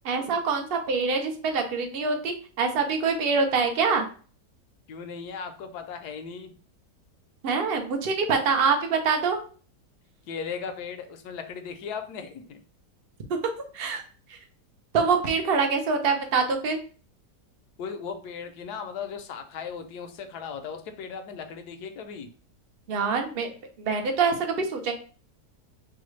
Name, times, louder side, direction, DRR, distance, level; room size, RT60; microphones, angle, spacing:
voice 1, 0.0-4.0 7.4-9.4 13.3-14.0 14.9-16.8 22.9-23.5 23.8-24.9, right 5 dB, 55° right, 5 dB, 0.6 m, -25 dB
voice 2, 4.9-6.5 10.3-12.6 17.8-22.3, left 6 dB, 75° left, 7 dB, 1.1 m, -37 dB
5.5 x 2.2 x 3.2 m, 0.40 s
omnidirectional pair, 1.8 m